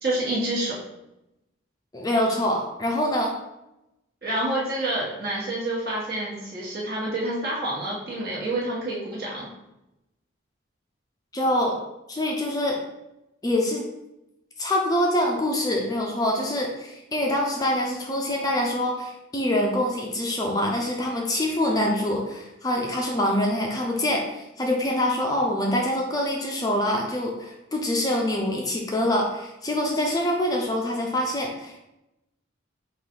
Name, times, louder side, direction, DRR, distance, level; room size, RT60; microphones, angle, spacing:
voice 1, 0.0-0.7 4.2-9.5, right 1 dB, 50° right, -5 dB, 1.4 m, -28 dB
voice 2, 1.9-3.4 11.3-11.8 12.1-12.8 13.4-13.8 14.6-31.8, left 1 dB, 20° left, 0 dB, 0.5 m, -25 dB
5.1 x 2.5 x 3.8 m, 0.91 s
head